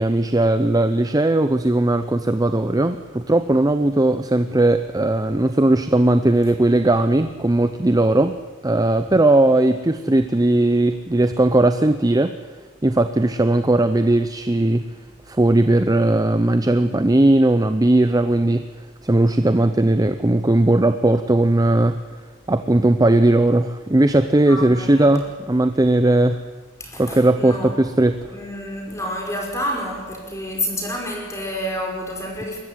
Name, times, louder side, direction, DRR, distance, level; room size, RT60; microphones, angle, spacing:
voice 1, 0.0-8.4 8.6-12.3 12.8-14.8 15.3-18.6 19.0-22.0 22.5-26.4 27.0-28.3, right 1 dB, 20° right, 9 dB, 0.7 m, -18 dB
voice 2, 24.5-25.1 26.8-27.7 28.3-32.6, equal, 15° left, 0 dB, 5.3 m, -29 dB
22.5 x 13.5 x 10.0 m, 1.3 s
head